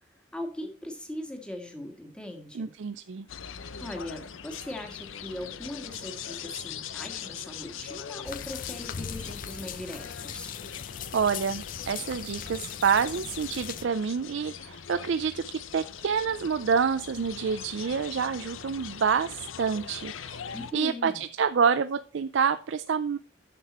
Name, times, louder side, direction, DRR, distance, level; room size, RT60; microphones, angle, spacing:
voice 1, 0.3-2.7 3.8-10.5 20.5-21.2, left 1 dB, 5° left, 4 dB, 1.6 m, -39 dB
voice 2, 2.5-3.3 11.1-15.4 15.7-20.4 20.7-23.2, right 6 dB, 65° right, 11 dB, 0.4 m, -27 dB
sound 1, 3.3-20.7, left 8 dB, 80° left, 0.7 m, -41 dB
sound 2, 8.3-13.9, left 7 dB, 45° left, 0.5 m, -40 dB
10.0 x 6.7 x 4.3 m, 0.40 s
head